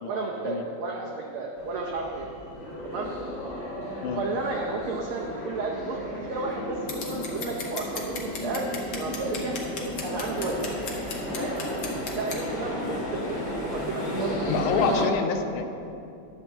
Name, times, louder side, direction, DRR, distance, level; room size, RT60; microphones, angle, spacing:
voice 1, 0.0-2.3 2.8-3.1 4.1-8.6 8.9-9.6 10.0-10.7 11.1-11.6 12.1-15.3, right 3 dB, 85° right, -1 dB, 1.2 m, -32 dB
sound 1, 1.6-15.1, left 1 dB, 40° left, 1.0 m, -34 dB
Scissors, 6.9-12.4, left 4 dB, 65° left, 1.0 m, -37 dB
voice 2, 14.5-15.7, left 6 dB, 85° left, 7 dB, 2.1 m, -27 dB
11.0 x 4.5 x 7.3 m, 2.8 s
omnidirectional pair, 3.5 m